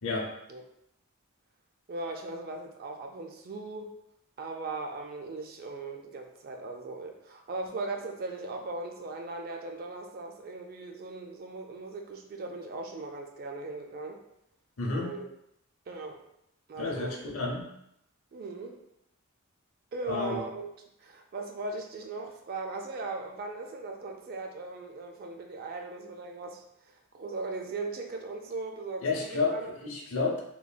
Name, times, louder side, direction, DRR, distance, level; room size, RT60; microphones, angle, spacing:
voice 1, 1.9-3.9 4.4-14.2 14.9-15.3 15.9-16.2 16.7-17.2 18.3-18.8 19.9-20.7 21.0-29.7, right 3 dB, 40° right, 3 dB, 0.3 m, -38 dB
voice 2, 14.8-15.1 16.8-17.7 20.1-20.4 29.0-30.4, left 3 dB, 70° left, -1 dB, 0.6 m, -31 dB
3.0 x 2.4 x 2.2 m, 0.79 s
head